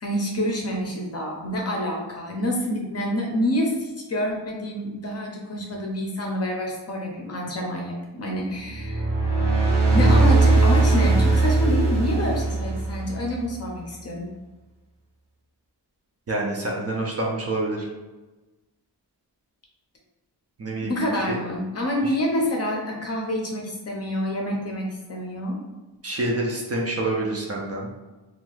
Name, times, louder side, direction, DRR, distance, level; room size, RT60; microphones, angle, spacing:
voice 1, 0.0-9.0 9.9-14.3 20.8-25.6, equal, 35° left, 0 dB, 0.6 m, -27 dB
sound 1, 8.7-13.3, right 3 dB, 85° right, 0.7 m, -19 dB
voice 2, 16.3-17.9 20.6-21.0 21.3-21.4 26.0-27.9, right 2 dB, 35° right, -1 dB, 0.5 m, -27 dB
2.7 x 2.3 x 3.0 m, 1.1 s
wide cardioid pair, 140°, 42 cm